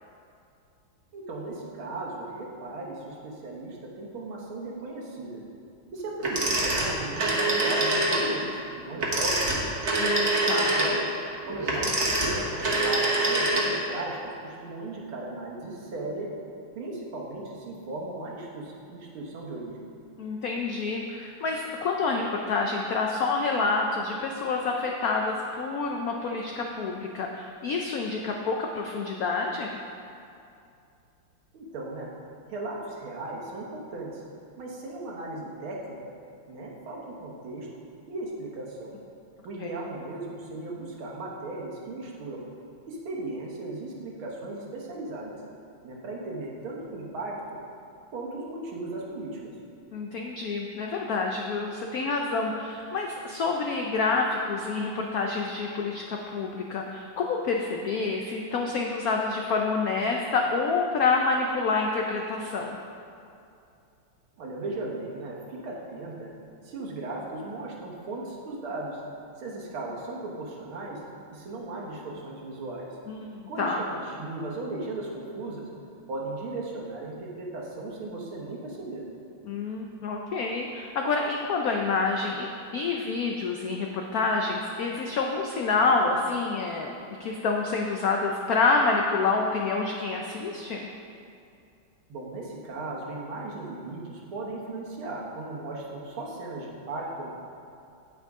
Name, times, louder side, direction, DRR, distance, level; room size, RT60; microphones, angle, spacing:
voice 1, 1.1-5.4 5.9-9.8 10.7-11.1 11.4-16.3 16.8-19.8 31.5-32.1 32.5-34.2 34.6-36.0 36.5-37.7 38.1-39.0 39.4-42.4 42.9-45.4 45.8-47.6 48.1-49.5 64.4-66.3 66.6-69.0 69.4-71.0 71.3-72.9 73.5-75.7 76.1-79.1 92.1-97.3, right 2 dB, 75° right, -2 dB, 2.1 m, -36 dB
Telephone, 6.2-8.3 8.9-14.0, right 2 dB, 40° right, 1.4 m, -25 dB
voice 2, 10.0-10.7 20.2-29.8 39.6-39.7 49.9-62.8 73.1-73.8 79.4-86.9 87.2-90.9, left 4 dB, 85° left, 1 dB, 0.8 m, -28 dB
9.2 x 8.6 x 3.6 m, 2.5 s
omnidirectional pair, 2.3 m